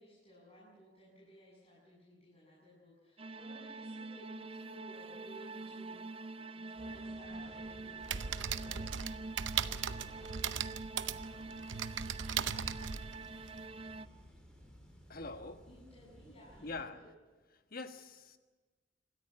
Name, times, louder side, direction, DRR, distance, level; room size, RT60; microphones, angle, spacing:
voice 1, 0.0-6.2 6.5-9.3 15.7-17.1, equal, 35° left, -7 dB, 7.2 m, -58 dB
sound 1, 3.2-14.1, right 3 dB, 30° right, 0.7 m, -45 dB
sound 2, 6.8-16.8, equal, 5° left, 4.3 m, -56 dB
sound 3, 8.0-13.6, right 8 dB, 85° right, 0.8 m, -38 dB
voice 2, 15.1-15.6 16.6-16.9 17.7-18.4, left 3 dB, 50° left, 8 dB, 1.4 m, -43 dB
26.5 x 13.5 x 8.8 m, 1.3 s
head